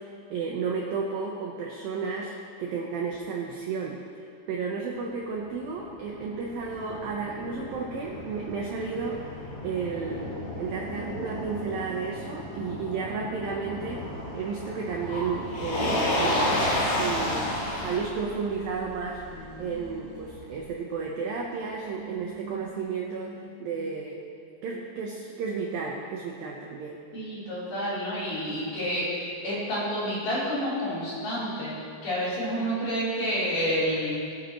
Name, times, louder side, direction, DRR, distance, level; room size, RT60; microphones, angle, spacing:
voice 1, 0.0-2.3 2.6-4.0 4.5-14.0 14.3-16.6 16.9-17.5 17.8-19.2 19.6-24.3 24.6-27.0, right 5 dB, 75° right, -1 dB, 2.1 m, -32 dB
Motor vehicle (road), 5.5-20.6, left 1 dB, 75° left, 6.0 m, -32 dB
voice 2, 19.3-19.6 27.1-31.7 32.0-34.2, equal, 45° left, -10 dB, 5.0 m, -29 dB
22.5 x 8.6 x 3.1 m, 2.3 s
omnidirectional pair, 5.4 m